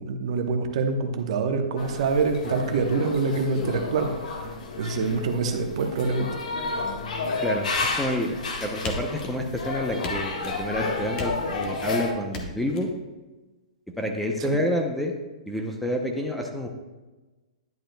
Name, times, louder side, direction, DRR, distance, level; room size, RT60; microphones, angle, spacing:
voice 1, 0.0-4.1 4.8-6.3 14.5-14.6, right 4 dB, 55° right, 5 dB, 1.0 m, -25 dB
sound 1, 1.8-12.1, left 3 dB, 80° left, 1.5 m, -31 dB
voice 2, 7.4-12.9 14.0-15.1 15.5-16.7, left 1 dB, ahead, 1 dB, 0.6 m, -28 dB
sound 2, 8.8-9.6 10.0-10.6 11.2-11.8 12.3-12.8, left 2 dB, 25° left, 1.0 m, -36 dB
10.5 x 7.6 x 2.2 m, 1.2 s
hypercardioid pair, 155°, 4 cm